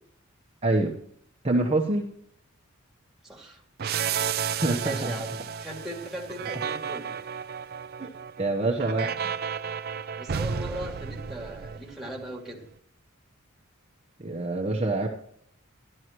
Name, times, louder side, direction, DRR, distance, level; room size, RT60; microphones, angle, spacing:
voice 1, 0.6-1.0 1.4-2.1 4.5-5.1 8.0-8.1 8.4-9.3 14.2-15.1, right 2 dB, 30° right, 0 dB, 1.0 m, -26 dB
voice 2, 3.2-3.6 4.8-7.2 10.2-12.6, right 1 dB, ahead, -1 dB, 2.5 m, -38 dB
sound 1, 3.8-12.3, right 7 dB, 45° right, 0.4 m, -32 dB
13.0 x 12.5 x 3.0 m, 0.67 s
head